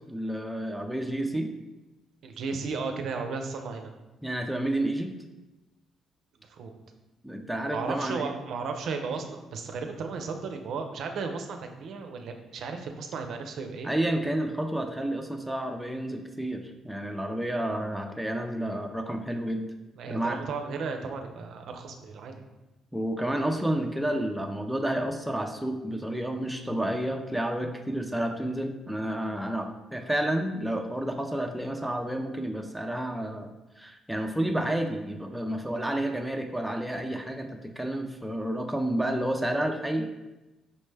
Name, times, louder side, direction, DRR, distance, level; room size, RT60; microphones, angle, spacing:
voice 1, 0.1-1.5 4.2-5.1 7.2-8.3 13.8-19.6 20.1-20.4 22.9-40.1, right 1 dB, 5° right, 3 dB, 0.4 m, -30 dB
voice 2, 2.2-3.9 6.4-6.7 7.7-13.9 19.9-22.4, right 4 dB, 70° right, 5 dB, 0.4 m, -35 dB
5.3 x 2.1 x 3.2 m, 1.1 s
cardioid pair, 90°, 0 cm